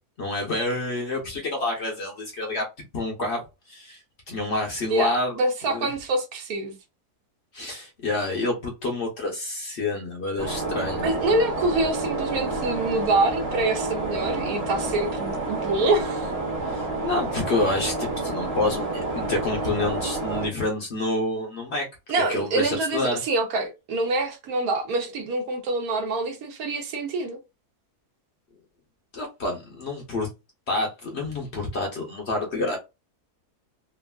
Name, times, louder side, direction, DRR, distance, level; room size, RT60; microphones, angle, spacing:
voice 1, 0.2-2.6 2.9-4.0 4.3-5.3 5.7-5.9 7.5-11.1 16.6-21.8 22.3-23.2 29.1-30.3 30.7-32.8, left 2 dB, 55° left, 0.8 m, -28 dB
voice 2, 4.9-6.7 11.0-16.3 22.1-27.4, right 2 dB, 70° right, 1.1 m, -26 dB
sound 1, 10.4-20.5, right 2 dB, 30° right, 0.8 m, -29 dB
2.9 x 2.4 x 2.2 m
omnidirectional pair, 1.7 m